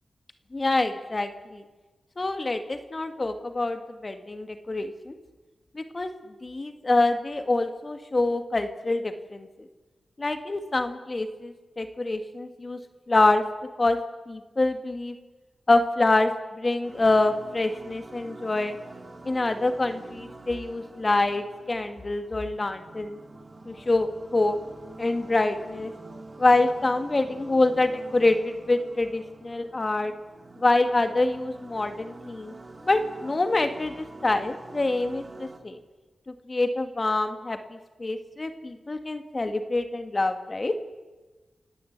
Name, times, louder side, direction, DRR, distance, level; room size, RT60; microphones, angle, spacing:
voice 1, 0.5-1.6 2.2-5.1 5.7-6.1 6.4-9.5 10.2-12.8 13.1-13.4 13.8-14.0 14.3-15.2 15.7-18.8 19.3-23.2 23.7-24.6 25.0-25.9 26.4-30.1 30.6-32.5 32.8-35.8 36.3-40.8, left 2 dB, 40° left, 8 dB, 1.8 m, -26 dB
sound 1, 16.8-35.6, right 2 dB, 35° right, 3.3 m, -46 dB
29.0 x 17.0 x 8.2 m, 1.2 s
wide cardioid pair, 70°, 0 cm